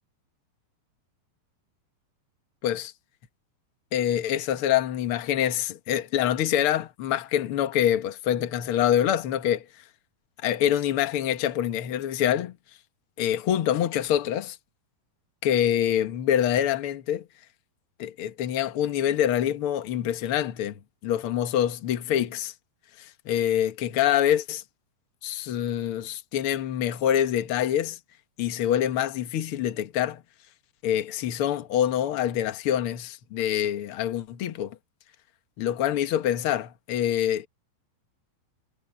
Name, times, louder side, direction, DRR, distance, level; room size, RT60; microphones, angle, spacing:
voice 1, 3.9-9.6 10.4-12.5 13.2-14.6 15.4-17.3 18.0-22.5 23.0-24.6 25.2-28.0 28.4-30.2 30.8-34.8 35.6-37.5, left 10 dB, 65° left, 1.3 m, -25 dB
omnidirectional pair, 4.2 m